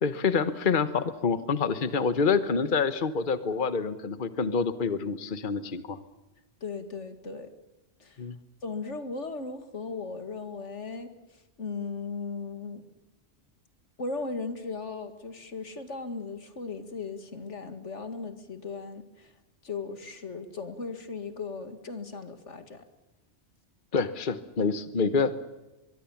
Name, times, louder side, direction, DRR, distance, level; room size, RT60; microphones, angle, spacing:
voice 1, 0.0-6.0 8.2-8.4 23.9-25.4, left 5 dB, 45° left, 12 dB, 1.3 m, -27 dB
voice 2, 6.6-7.5 8.0-8.2 8.6-11.1 11.6-12.8 14.0-19.3 19.6-22.8, left 4 dB, 90° left, 8 dB, 2.4 m, -37 dB
23.5 x 23.0 x 7.2 m, 1.1 s
omnidirectional pair, 1.2 m